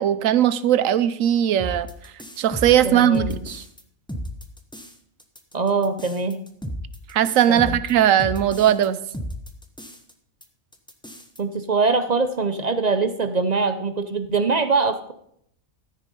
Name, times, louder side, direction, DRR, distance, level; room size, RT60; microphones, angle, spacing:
voice 1, 0.0-1.9 2.4-3.6 7.1-9.0, right 10 dB, 70° right, 14 dB, 1.1 m, -19 dB
sound 1, 1.6-3.8 4.1-4.9 5.2-8.9 9.1-10.1 10.4-10.5 10.7-11.4, equal, 5° left, 0.9 m, -34 dB
voice 2, 2.8-3.3 5.5-6.4 7.5-7.8 11.4-15.1, right 4 dB, 40° right, 10 dB, 0.6 m, -23 dB
14.0 x 6.6 x 5.3 m, 0.69 s
omnidirectional pair, 1.5 m